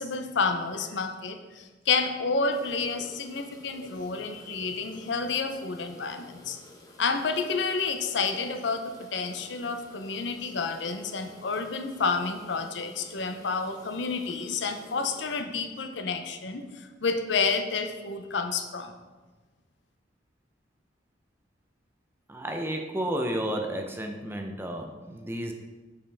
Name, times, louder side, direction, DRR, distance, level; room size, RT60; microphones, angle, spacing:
voice 1, 0.0-6.6 7.0-18.9, left 4 dB, 70° left, 7 dB, 0.6 m, -30 dB
sound 1, 2.5-15.4, left 1 dB, 20° left, 0.8 m, -51 dB
voice 2, 22.3-25.5, right 1 dB, 10° right, 3 dB, 0.5 m, -32 dB
6.9 x 5.3 x 3.3 m, 1.3 s
head